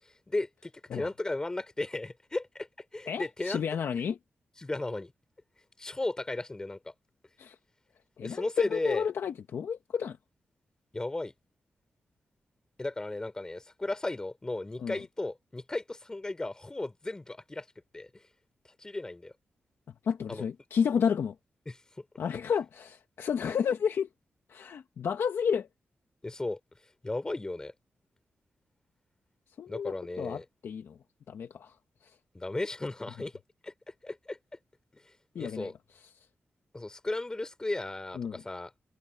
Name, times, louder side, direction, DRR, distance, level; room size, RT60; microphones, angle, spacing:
voice 1, 0.0-2.7 2.9-3.6 4.6-5.1 5.8-6.9 8.2-9.1 10.9-11.3 12.8-17.7 17.9-18.2 18.8-19.3 20.3-20.5 21.7-22.0 26.2-26.6 27.0-27.7 29.7-30.4 32.3-33.7 34.0-34.4 34.9-35.7 36.7-38.7, left 2 dB, 15° left, 3.3 m, -35 dB
voice 2, 3.1-4.2 7.4-7.6 8.2-10.2 14.8-15.0 20.0-21.3 22.2-24.1 24.5-25.7 29.6-31.0 31.3-31.7 32.0-32.1 35.3-35.7 38.2-38.4, left 7 dB, 70° left, 1.2 m, -31 dB
wide cardioid pair, 175°, 4 cm